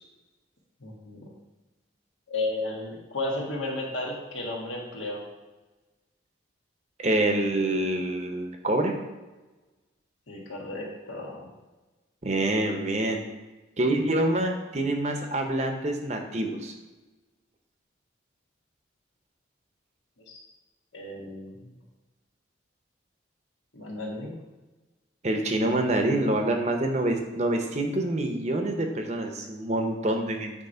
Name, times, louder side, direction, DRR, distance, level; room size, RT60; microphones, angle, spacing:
voice 1, 0.8-1.3 2.3-5.2 10.3-11.5 20.3-20.4 20.9-21.7 23.7-24.4, left 2 dB, 85° left, -2 dB, 1.6 m, -33 dB
voice 2, 7.0-8.9 12.2-13.2 13.8-16.7 25.2-30.5, right 1 dB, 35° right, 4 dB, 0.7 m, -26 dB
9.2 x 3.2 x 4.3 m, 1.2 s
head